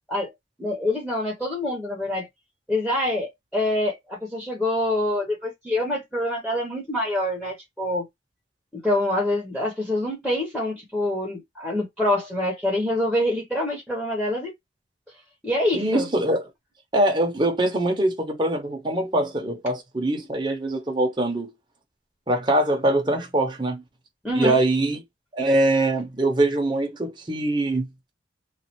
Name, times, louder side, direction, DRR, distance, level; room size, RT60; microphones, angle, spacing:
voice 1, 0.6-2.3 2.7-8.0 8.7-14.5 15.4-16.1 24.2-24.6, left 1 dB, ahead, 0.9 m, -25 dB
voice 2, 15.7-16.4 16.9-21.5 22.3-23.8 24.3-25.0 25.3-27.9, right 1 dB, 25° right, 0.7 m, -23 dB
3.1 x 2.4 x 2.8 m
head